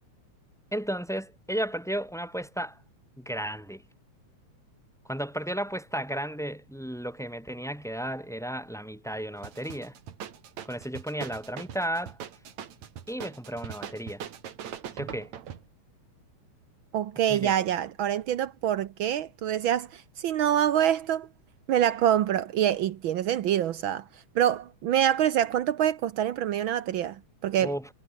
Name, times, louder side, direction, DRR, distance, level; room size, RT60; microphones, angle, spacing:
voice 1, 0.7-2.8 3.2-3.8 5.1-9.9 10.7-12.2 13.1-14.2 14.9-15.3 17.3-17.5 27.6-27.9, equal, ahead, 3.5 m, -33 dB
sound 1, 9.4-15.7, right 9 dB, 65° right, 3.1 m, -41 dB
voice 2, 16.9-21.3 21.7-24.0 24.3-27.7, right 10 dB, 90° right, 1.1 m, -26 dB
omnidirectional pair, 3.5 m